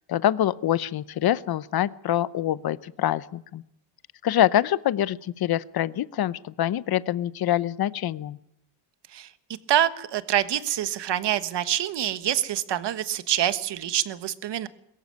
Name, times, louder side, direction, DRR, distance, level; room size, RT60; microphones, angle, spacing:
voice 1, 0.1-3.6 4.2-8.4, left 12 dB, 55° left, 18 dB, 0.8 m, -25 dB
voice 2, 9.7-14.7, right 11 dB, 70° right, 13 dB, 1.5 m, -26 dB
22.5 x 14.0 x 9.5 m, 0.79 s
wide cardioid pair, 165°, 43 cm